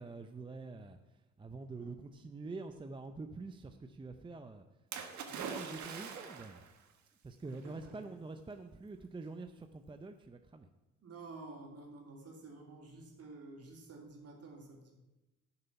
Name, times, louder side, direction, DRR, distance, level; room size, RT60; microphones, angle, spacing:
voice 1, 0.0-4.6 5.3-6.8 7.2-10.7, right 3 dB, 15° right, 7 dB, 0.6 m, -46 dB
Splash splatter, 4.9-6.7 7.6-7.7, right 6 dB, 70° right, 1.4 m, -43 dB
voice 2, 7.4-8.0 11.0-14.9, right 3 dB, 55° right, 0 dB, 2.9 m, -51 dB
11.0 x 6.9 x 5.8 m, 1.0 s
cardioid pair, 90°, 30 cm